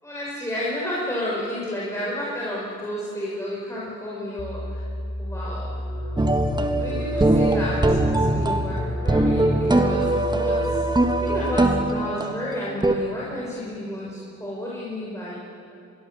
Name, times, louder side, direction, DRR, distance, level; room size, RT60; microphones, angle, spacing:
voice 1, 0.0-4.8 5.2-5.7 6.8-10.9 11.2-15.4, left 1 dB, 10° left, -6 dB, 6.1 m, -31 dB
sound 1, 4.4-11.8, equal, 30° left, 1.9 m, -32 dB
sound 2, 5.5-12.4, left 3 dB, 85° left, 3.7 m, -35 dB
sound 3, 6.2-13.0, right 2 dB, 15° right, 1.7 m, -22 dB
24.0 x 22.0 x 7.2 m, 2.9 s
cardioid pair, 90°, 30 cm